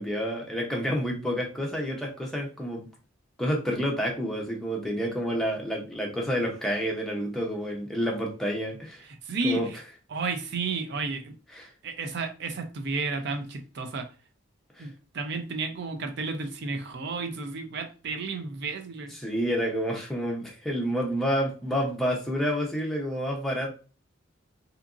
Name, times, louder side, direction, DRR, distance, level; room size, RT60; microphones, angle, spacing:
voice 1, 0.0-2.9 3.4-9.0 9.4-9.7 11.5-11.7 14.8-14.9 19.1-23.7, equal, ahead, -1 dB, 0.6 m, -29 dB
voice 2, 9.3-9.8 10.1-11.3 11.8-14.1 14.8-19.1, right 3 dB, 60° right, 6 dB, 0.4 m, -32 dB
2.8 x 2.5 x 2.4 m, 0.35 s
head